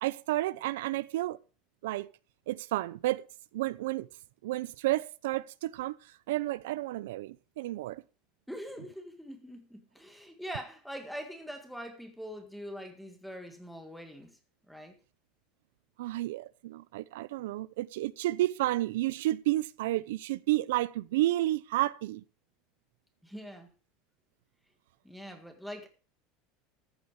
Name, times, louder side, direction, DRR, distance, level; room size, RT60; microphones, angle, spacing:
voice 1, 0.0-1.4 1.8-2.1 2.5-3.2 3.5-4.1 4.4-6.0 6.3-8.0 16.0-22.2, right 16 dB, 90° right, 0.6 m, -31 dB
voice 2, 8.5-14.4 14.7-14.9 23.2-23.7 25.0-25.9, equal, ahead, 1.7 m, -43 dB
14.0 x 8.1 x 4.8 m
supercardioid pair, 175°, 0 cm